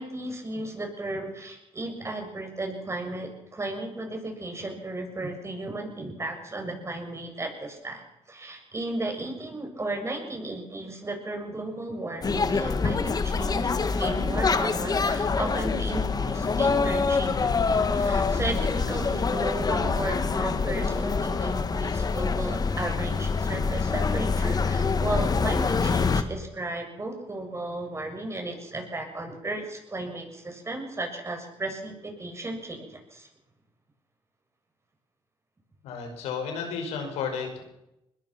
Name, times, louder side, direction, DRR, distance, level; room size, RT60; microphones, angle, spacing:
voice 1, 0.0-33.3, right 2 dB, 25° right, 3 dB, 7.2 m, -35 dB
sound 1, 12.2-26.2, left 4 dB, 35° left, 1.8 m, -25 dB
voice 2, 35.8-37.6, left 6 dB, 90° left, 3 dB, 5.7 m, -32 dB
22.5 x 20.5 x 6.0 m, 0.88 s
cardioid pair, 75°, 11 cm